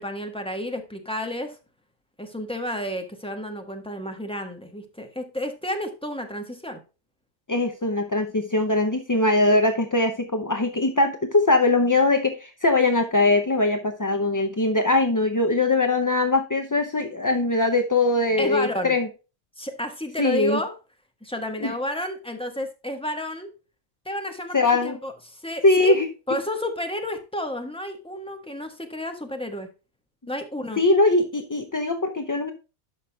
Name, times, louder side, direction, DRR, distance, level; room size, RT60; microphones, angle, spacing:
voice 1, 0.0-1.6 2.2-6.8 18.4-18.9 19.6-20.7 21.2-23.5 24.0-26.0 26.3-29.7 30.3-30.8, left 1 dB, 5° left, 5 dB, 1.1 m, -31 dB
voice 2, 7.5-19.1 20.2-20.6 21.6-21.7 24.5-25.0 25.6-26.1 30.8-32.5, left 2 dB, 30° left, 6 dB, 0.4 m, -21 dB
12.0 x 5.4 x 2.3 m, 0.31 s
omnidirectional pair, 1.2 m